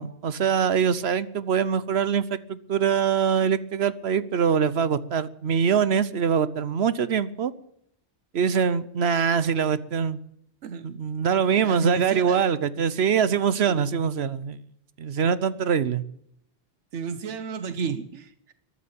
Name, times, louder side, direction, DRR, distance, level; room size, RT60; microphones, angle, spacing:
voice 1, 0.0-7.5 8.3-10.2 10.8-14.6 15.0-16.0, right 7 dB, 65° right, 16 dB, 1.1 m, -23 dB
voice 2, 11.6-12.4 16.9-18.5, right 5 dB, 85° right, 12 dB, 1.2 m, -32 dB
14.0 x 11.5 x 8.7 m, 0.73 s
omnidirectional pair, 1.2 m